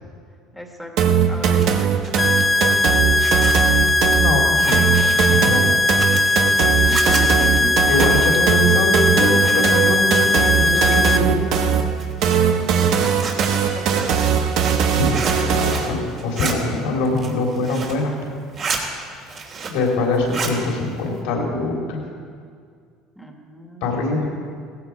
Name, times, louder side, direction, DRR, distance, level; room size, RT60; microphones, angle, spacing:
voice 1, 0.5-0.9 1.2-2.8 6.8-8.1 8.7-8.8 13.0-14.2 19.6-19.9 23.2-24.5, right 1 dB, 5° left, 2 dB, 2.0 m, -36 dB
sound 1, 1.0-16.0, right 7 dB, 65° right, 1.4 m, -20 dB
Zipper (clothing), 1.3-9.9 10.2-11.2 11.6-15.9 16.2-16.5 17.0-18.0 18.4-18.8 19.2-19.9 20.1-20.6, right 5 dB, 45° right, 3.0 m, -32 dB
sound 2, 2.2-11.2, left 2 dB, 20° left, 0.5 m, -19 dB
voice 2, 4.2-4.8 5.3-5.7 7.9-11.5 14.9-18.3 19.2-19.3 19.7-22.0 23.8-24.3, left 2 dB, 80° left, 0 dB, 3.3 m, -23 dB
17.0 x 15.5 x 4.7 m, 2.2 s
supercardioid pair, 115°, 0 cm